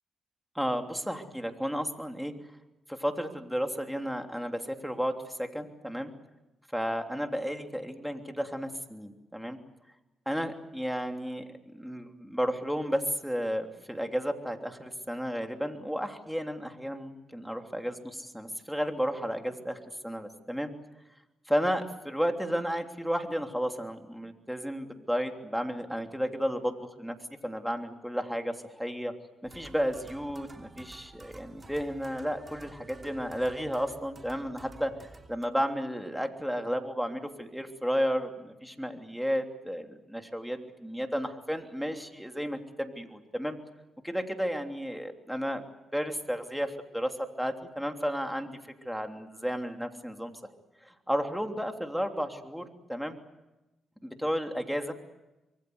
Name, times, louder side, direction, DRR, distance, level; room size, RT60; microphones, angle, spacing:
voice 1, 0.5-2.3 2.9-6.1 6.7-9.6 10.2-11.4 11.7-19.8 20.0-20.7 21.5-27.2 27.4-29.1 29.4-34.9 35.3-43.6 44.0-45.6 45.9-47.1 47.4-48.6 48.8-50.3 50.8-53.2 54.0-54.9, equal, ahead, 4 dB, 3.2 m, -32 dB
sound 1, 29.4-35.5, right 3 dB, 30° right, 3.0 m, -51 dB
26.0 x 23.0 x 8.0 m, 1.0 s
cardioid pair, 75°, 0 cm